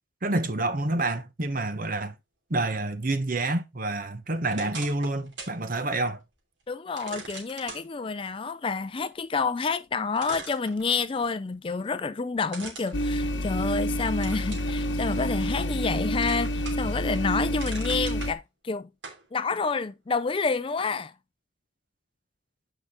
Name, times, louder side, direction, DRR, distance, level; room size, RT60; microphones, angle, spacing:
voice 1, 0.2-2.2 2.5-6.2, right 2 dB, 45° right, 1.0 m, -28 dB
sound 1, 4.5-5.6 6.0-6.1 7.0-7.8 9.6-9.7 10.2-11.2 12.5-13.8 14.2-14.7 15.2-15.9 16.2-16.9 17.3-18.3 19.0-19.2, right 3 dB, 65° right, 2.7 m, -41 dB
voice 2, 6.7-18.9 19.3-21.1, left 4 dB, 25° left, 0.4 m, -29 dB
sound 2, 12.9-18.3, equal, 65° left, 1.0 m, -28 dB
8.8 x 5.0 x 3.5 m
head